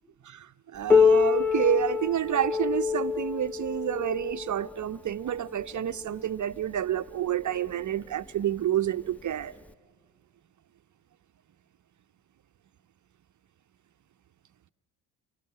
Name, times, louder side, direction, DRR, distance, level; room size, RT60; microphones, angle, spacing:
voice 1, 0.2-9.5, right 10 dB, 40° right, 0.7 m, -29 dB
Piano, 0.9-6.2 7.1-7.2 7.7-7.8 8.6-8.7 9.7-9.8, left 5 dB, 5° left, 0.7 m, -26 dB
29.5 x 18.0 x 8.6 m
hypercardioid pair, 50°, 48 cm